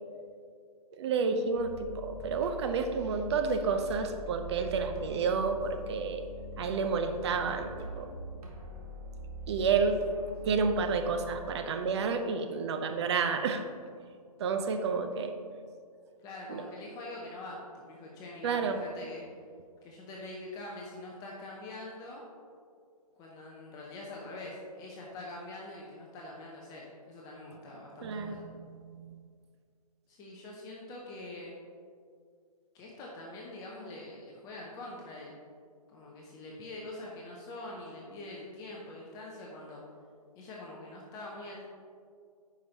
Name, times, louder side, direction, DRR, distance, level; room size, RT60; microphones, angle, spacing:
voice 1, 1.0-6.2 6.6-8.1 9.5-10.0 10.4-13.6 14.4-15.4 16.5-16.6 18.4-18.8 28.0-29.2, right 5 dB, 45° right, 7 dB, 0.6 m, -30 dB
sound 1, 1.5-11.4, left 1 dB, 75° right, 1.5 m, -43 dB
voice 2, 16.2-19.2 19.8-22.2 23.1-28.4 30.1-31.5 32.7-35.4 35.9-39.8 40.3-41.6, left 2 dB, 20° left, -3 dB, 0.7 m, -44 dB
9.4 x 5.1 x 2.9 m, 2.2 s
hypercardioid pair, 145°, 20 cm